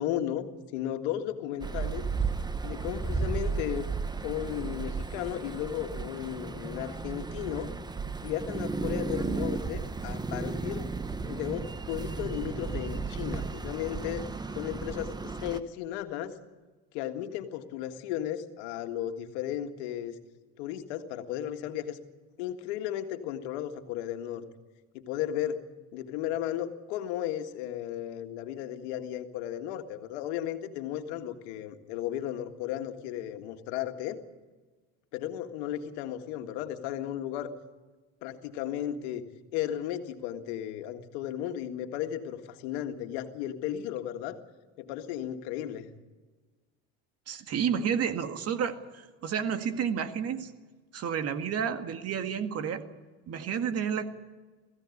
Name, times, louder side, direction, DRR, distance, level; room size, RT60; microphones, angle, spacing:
voice 1, 0.0-2.1 2.6-3.9 4.2-7.7 8.2-10.8 11.3-14.3 14.6-16.4 16.9-20.2 20.6-22.0 22.4-24.5 24.9-25.6 25.9-34.2 35.1-37.5 38.2-39.2 39.5-44.4 44.8-45.9, left 11 dB, 90° left, 6 dB, 1.9 m, -35 dB
sound 1, 1.6-15.6, right 4 dB, 15° right, 0.9 m, -34 dB
voice 2, 47.3-50.5 50.9-52.8 53.3-54.1, right 7 dB, 50° right, 8 dB, 2.0 m, -30 dB
20.5 x 15.5 x 9.8 m, 1.3 s
supercardioid pair, 105°, 32 cm